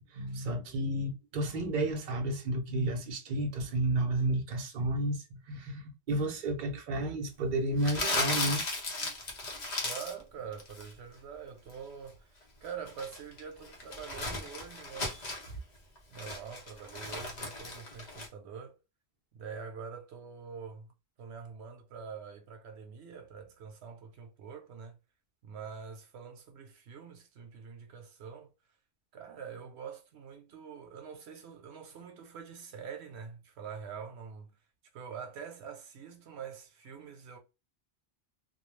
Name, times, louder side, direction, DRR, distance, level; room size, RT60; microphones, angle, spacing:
voice 1, 0.1-8.6 9.0-9.1, right 1 dB, 55° right, 0.8 m, -32 dB
Crumpling crinkling, 7.8-10.2 10.5-10.9 12.6-15.5 16.0-18.3, left 2 dB, 45° left, 0.9 m, -36 dB
voice 2, 9.8-15.1 16.1-18.8 19.3-20.9 21.2-25.0 25.4-28.5 29.1-34.6 34.9-37.4, right 6 dB, 90° right, 0.9 m, -45 dB
2.3 x 2.2 x 3.1 m
omnidirectional pair, 1.1 m